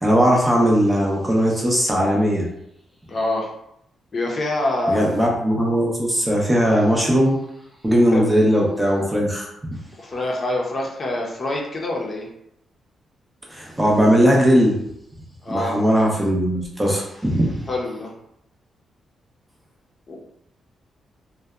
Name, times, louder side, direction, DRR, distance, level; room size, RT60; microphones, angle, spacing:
voice 1, 0.0-2.4 4.9-7.4 7.8-9.5 13.5-14.7 15.5-17.6, equal, 15° right, -2 dB, 0.6 m, -18 dB
voice 2, 3.1-3.5 4.1-5.2 8.1-8.3 10.0-12.3 15.4-15.8 17.7-18.1 20.1-20.2, left 2 dB, 40° left, -2 dB, 0.6 m, -25 dB
2.6 x 2.1 x 2.3 m, 0.77 s
cardioid pair, 95°, 0 cm